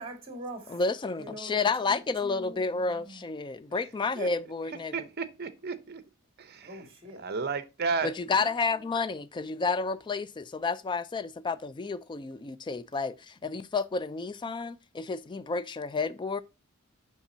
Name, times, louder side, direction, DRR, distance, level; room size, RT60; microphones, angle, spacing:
voice 1, 0.0-0.8 1.2-3.2 6.6-7.2 8.7-8.8, right 1 dB, 25° right, 2.0 m, -43 dB
voice 2, 0.7-4.9 8.0-16.4, left 4 dB, 20° left, 0.3 m, -31 dB
voice 3, 4.9-6.0 6.4-6.8 7.2-8.1, right 4 dB, 50° right, 0.7 m, -33 dB
7.2 x 5.8 x 2.7 m
head